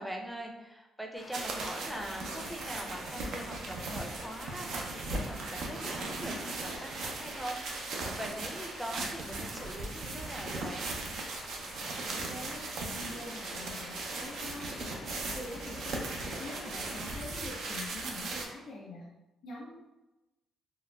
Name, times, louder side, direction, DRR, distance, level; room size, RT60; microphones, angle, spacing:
voice 1, 0.0-10.9, right 1 dB, 5° right, 1 dB, 0.5 m, -42 dB
sound 1, 1.1-17.9, left 3 dB, 50° left, 0.4 m, -51 dB
sound 2, 1.3-18.4, right 2 dB, 75° right, 0.5 m, -38 dB
voice 2, 12.1-16.0 16.4-19.1 19.4-19.7, left 2 dB, 80° left, -5 dB, 0.9 m, -45 dB
3.9 x 2.1 x 2.3 m, 1.0 s
cardioid pair, 90°, 0 cm